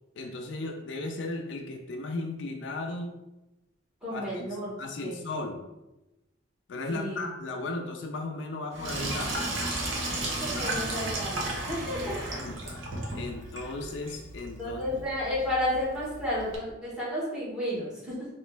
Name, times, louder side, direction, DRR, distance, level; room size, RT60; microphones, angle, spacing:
voice 1, 0.2-3.2 4.1-4.5 4.8-5.6 6.7-9.4 10.5-10.8 12.4-12.8 13.1-15.0, left 2 dB, 65° left, 3 dB, 0.4 m, -36 dB
voice 2, 4.0-4.7 5.0-5.2 6.9-7.2 10.2-12.2 14.6-18.3, left 1 dB, 5° right, -7 dB, 1.3 m, -32 dB
Sink (filling or washing), 8.7-16.6, right 2 dB, 90° right, 0.8 m, -34 dB
3.1 x 2.9 x 3.3 m, 1.0 s
head